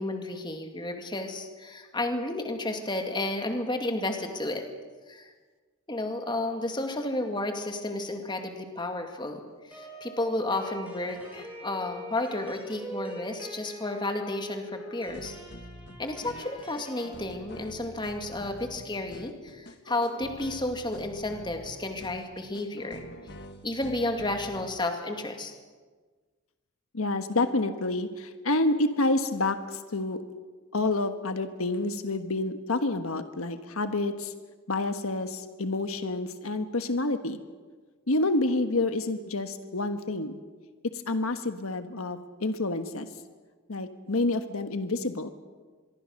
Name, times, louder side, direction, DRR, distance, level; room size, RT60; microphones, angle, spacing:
voice 1, 0.0-4.7 5.1-5.3 5.9-9.4 9.7-15.4 16.0-23.0 23.6-25.5, left 2 dB, 20° left, 4 dB, 2.3 m, -32 dB
sound 1, 9.7-17.1, equal, 5° right, 4.8 m, -43 dB
sound 2, 15.1-24.8, left 1 dB, 50° left, 1.7 m, -46 dB
voice 2, 26.9-30.2 30.7-34.3 34.7-37.4 38.1-40.4 41.1-43.1 43.7-45.3, left 2 dB, 75° left, 8 dB, 1.4 m, -28 dB
25.0 x 23.0 x 6.5 m, 1.4 s
head